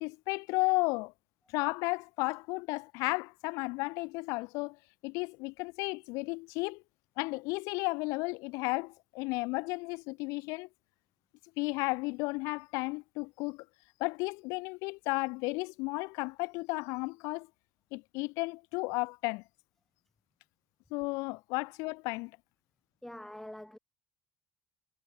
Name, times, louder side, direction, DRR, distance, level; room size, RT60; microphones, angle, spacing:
voice 1, 0.0-1.1 1.5-4.8 5.0-6.8 7.2-10.7 11.6-13.6 14.0-17.5 17.9-19.4 20.9-22.3, left 26 dB, 80° left, 0.8 m, -33 dB
voice 2, 23.0-23.8, left 1 dB, 5° left, 5.1 m, -45 dB
supercardioid pair, 70°, 6 cm